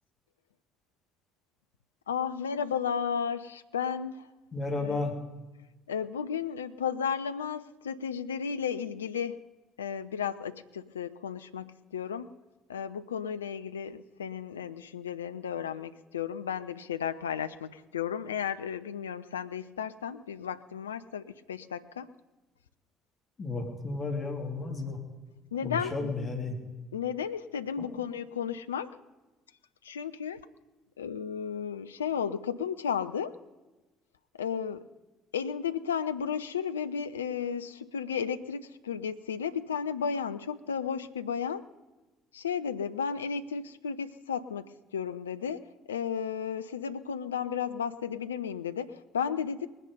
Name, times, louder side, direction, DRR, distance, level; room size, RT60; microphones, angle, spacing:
voice 1, 2.1-4.3 4.7-5.1 5.9-9.4 9.8-12.3 12.7-22.1 25.5-26.1 26.9-29.0 29.8-30.5 31.0-33.3 34.4-34.9 35.3-41.6 42.3-49.7, left 7 dB, 80° left, 12 dB, 0.5 m, -34 dB
voice 2, 4.5-5.1 23.4-25.0 25.6-26.6 27.8-27.9, left 3 dB, 35° left, 2 dB, 3.1 m, -33 dB
20.0 x 10.0 x 5.5 m, 1.1 s
figure-of-eight pair, 55°, 0 cm